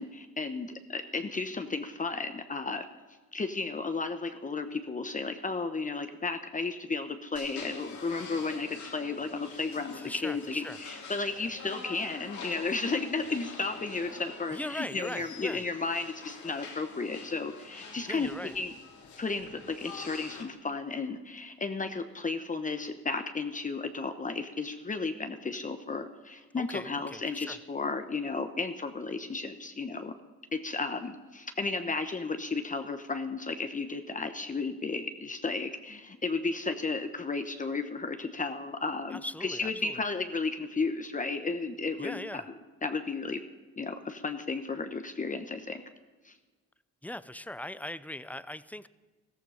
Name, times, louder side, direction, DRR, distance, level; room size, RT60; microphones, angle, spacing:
voice 1, 0.0-2.9 3.3-18.3 18.5-18.7 19.2-30.1 30.5-42.4 42.8-43.4 43.8-45.8 46.2-46.3, left 4 dB, 25° left, 8 dB, 1.0 m, -33 dB
washington americanhistory oldgloryin, 7.4-20.4, left 5 dB, 70° left, 3.7 m, -46 dB
voice 2, 10.0-10.8 14.5-15.6 18.1-18.5 26.6-27.6 39.1-40.0 42.0-42.4 47.0-48.9, left 1 dB, 5° left, 16 dB, 0.6 m, -40 dB
14.5 x 14.0 x 5.6 m, 1.3 s
cardioid pair, 90°, 30 cm